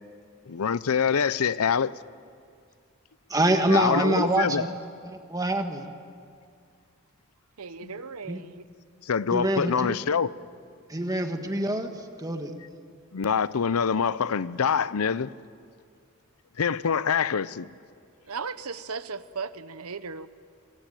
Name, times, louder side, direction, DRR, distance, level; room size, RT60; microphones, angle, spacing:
voice 1, 0.5-1.9 3.7-4.6 7.8-7.9 9.0-10.3 13.1-15.3 16.6-17.7, left 6 dB, 80° left, 18 dB, 0.6 m, -25 dB
voice 2, 3.3-4.7 5.1-5.9 8.3-8.4 9.3-9.9 10.9-11.9 12.2-12.5, right 1 dB, 15° right, 6 dB, 1.5 m, -25 dB
voice 3, 7.6-8.6 18.2-20.3, right 5 dB, 80° right, 14 dB, 0.9 m, -36 dB
27.0 x 23.0 x 9.1 m, 2.3 s
head